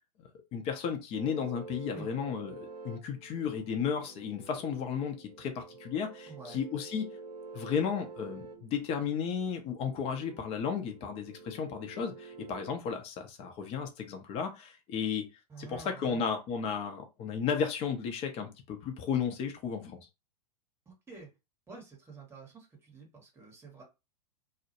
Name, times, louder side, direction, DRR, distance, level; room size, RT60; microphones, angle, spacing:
voice 1, 0.2-7.1 7.5-15.2 15.6-20.1, left 7 dB, 30° left, 5 dB, 0.6 m, -34 dB
sound 1, 1.1-12.8, right 4 dB, 75° right, 0.6 m, -48 dB
voice 2, 6.3-6.6 15.5-16.2 20.9-21.3 21.7-23.8, right 4 dB, 10° right, 0 dB, 0.9 m, -48 dB
2.2 x 2.0 x 2.9 m, 0.26 s
figure-of-eight pair, 100°, 21 cm